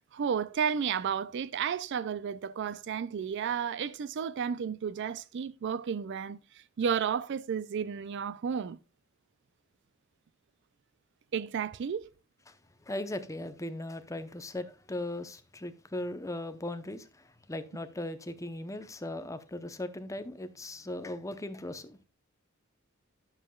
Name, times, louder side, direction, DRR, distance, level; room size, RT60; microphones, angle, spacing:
voice 1, 0.1-8.8 11.3-12.1, right 7 dB, 55° right, 0.4 m, -32 dB
voice 2, 12.8-22.0, left 1 dB, 15° left, 0.7 m, -38 dB
10.5 x 7.4 x 2.3 m
head